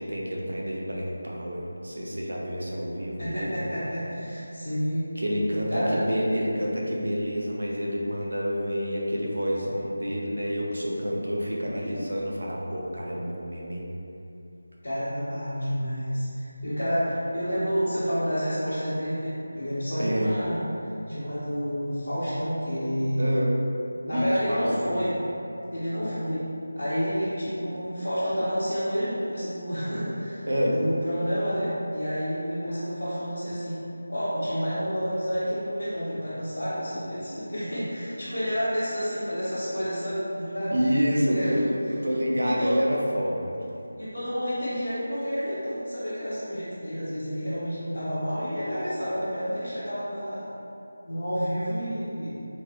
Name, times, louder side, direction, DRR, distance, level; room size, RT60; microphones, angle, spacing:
voice 1, 0.0-3.5 5.2-13.8 20.0-20.3 23.2-23.5 24.1-25.0 30.5-30.8 40.7-43.6, equal, 75° right, -3 dB, 0.6 m, -28 dB
voice 2, 3.2-5.1 5.7-6.0 11.7-12.1 14.8-23.3 24.0-25.2 25.7-26.4 26.8-30.5 30.7-33.8 34.1-40.8 41.3-41.7 42.4-42.8 44.0-50.5 51.0-52.3, equal, 85° left, -14 dB, 1.2 m, -29 dB
3.9 x 2.4 x 2.9 m, 2.8 s
figure-of-eight pair, 165°, 0 cm